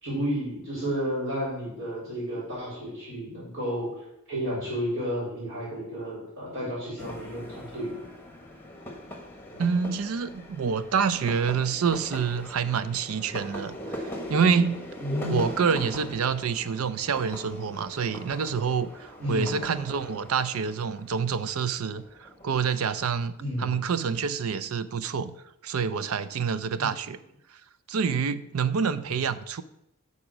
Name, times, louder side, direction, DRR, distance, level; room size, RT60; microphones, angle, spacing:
voice 1, 0.0-3.9 4.3-8.0 15.0-15.4 19.2-19.6 23.4-23.7, equal, 60° right, -7 dB, 3.6 m, -31 dB
sound 1, 7.0-22.5, equal, 10° left, 1.3 m, -41 dB
voice 2, 9.6-14.9 15.3-23.3 23.6-25.4 25.6-27.2 27.9-29.6, right 6 dB, 85° right, 14 dB, 0.5 m, -27 dB
9.9 x 4.1 x 6.0 m, 0.82 s
head